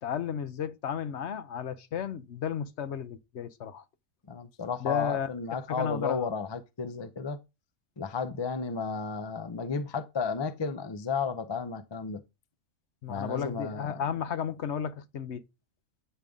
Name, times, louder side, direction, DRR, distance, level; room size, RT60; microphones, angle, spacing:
voice 1, 0.0-3.8 4.8-5.3 5.7-6.3 13.0-15.4, left 8 dB, 60° left, 0.9 m, -33 dB
voice 2, 4.3-7.4 8.0-12.2 13.1-13.8, left 5 dB, 40° left, 0.4 m, -33 dB
9.0 x 5.2 x 3.6 m
omnidirectional pair, 1.4 m